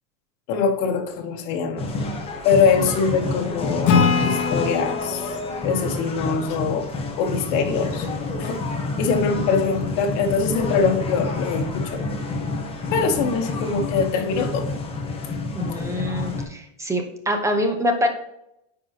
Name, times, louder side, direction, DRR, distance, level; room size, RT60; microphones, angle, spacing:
voice 1, 0.5-1.9 2.4-5.4 5.6-6.9 7.2-8.1 8.4-8.6 9.0-12.0 12.9-14.7, left 5 dB, 55° left, 3 dB, 1.4 m, -23 dB
sound 1, 1.8-16.4, left 2 dB, 15° left, 1.1 m, -29 dB
Acoustic guitar / Strum, 3.9-7.3, left 6 dB, 35° left, 1.4 m, -24 dB
voice 2, 15.5-18.1, equal, 10° right, 4 dB, 0.8 m, -25 dB
9.8 x 4.6 x 2.9 m, 0.82 s
supercardioid pair, 155°, 38 cm